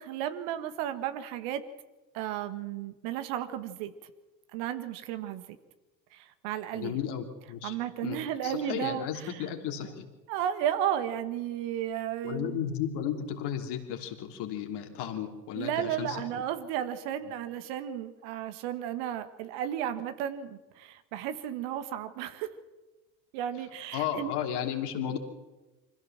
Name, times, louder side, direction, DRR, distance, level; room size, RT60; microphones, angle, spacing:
voice 1, 0.0-1.7 2.1-4.0 4.5-5.5 6.1-7.0 7.6-9.4 10.3-12.6 15.5-22.5 23.3-24.3, right 10 dB, 55° right, 10 dB, 1.9 m, -33 dB
voice 2, 6.7-7.7 8.0-10.1 12.2-16.4 23.9-25.2, left 9 dB, 50° left, 4 dB, 3.4 m, -34 dB
25.5 x 15.5 x 7.4 m, 1.2 s
figure-of-eight pair, 70°, 50 cm